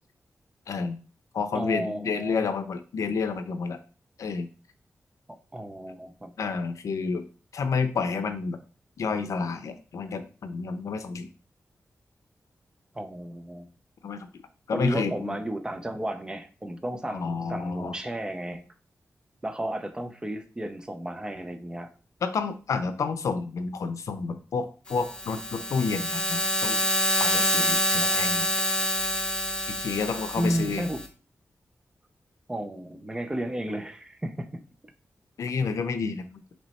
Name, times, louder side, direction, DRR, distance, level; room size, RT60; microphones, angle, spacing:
voice 1, 0.7-1.0 1.3-3.8 4.2-4.5 6.4-7.2 7.5-8.6 9.0-11.3 14.0-14.4 14.7-15.4 17.1-18.0 22.2-26.8 27.2-28.5 29.7-30.9 35.4-36.4, left 5 dB, 90° left, 0.5 m, -30 dB
voice 2, 1.5-2.5 5.3-6.3 12.9-13.7 14.7-18.6 19.4-21.9 30.4-31.0 32.5-34.6, right 1 dB, 15° right, 0.5 m, -33 dB
sound 1, 24.9-31.1, left 1 dB, 20° left, 0.7 m, -27 dB
3.1 x 3.1 x 4.1 m
wide cardioid pair, 115°, 5 cm